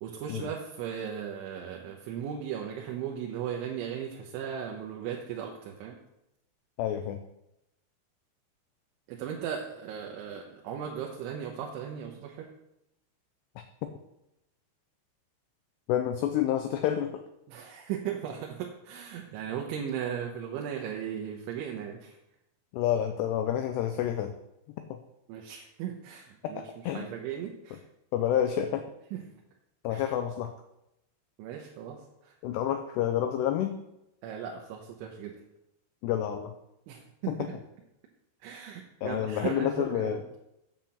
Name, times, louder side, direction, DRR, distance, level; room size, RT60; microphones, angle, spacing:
voice 1, 0.0-6.0 9.1-12.5 17.5-22.2 25.3-26.6 26.9-27.8 29.1-29.2 29.9-30.1 31.4-32.3 34.2-35.3 36.9-37.5 38.4-40.2, right 8 dB, 80° right, 1 dB, 3.3 m, -37 dB
voice 2, 6.8-7.2 15.9-17.2 22.7-24.3 24.9-25.0 26.4-27.1 28.1-28.9 29.8-30.5 32.4-33.8 36.0-36.5 37.3-37.4 39.0-40.2, left 10 dB, 85° left, 7 dB, 2.4 m, -29 dB
8.8 x 5.9 x 7.2 m, 0.86 s
omnidirectional pair, 5.6 m